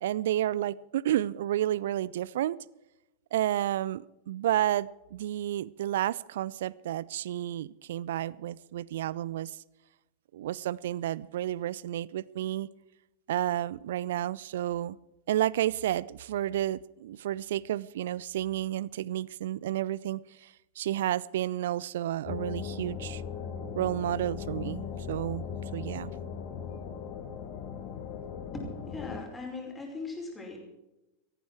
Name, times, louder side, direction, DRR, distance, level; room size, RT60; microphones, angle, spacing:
voice 1, 0.0-2.6 3.3-9.6 10.3-12.7 13.3-15.0 15.3-20.5 20.8-23.2 23.8-25.5 25.7-26.1, right 12 dB, 60° right, 23 dB, 0.5 m, -31 dB
sound 1, 22.3-29.2, left 7 dB, 40° left, 2.0 m, -38 dB
voice 2, 28.5-30.6, left 3 dB, 15° left, 2 dB, 5.1 m, -39 dB
17.0 x 15.0 x 4.6 m, 0.97 s
figure-of-eight pair, 90°, 0 cm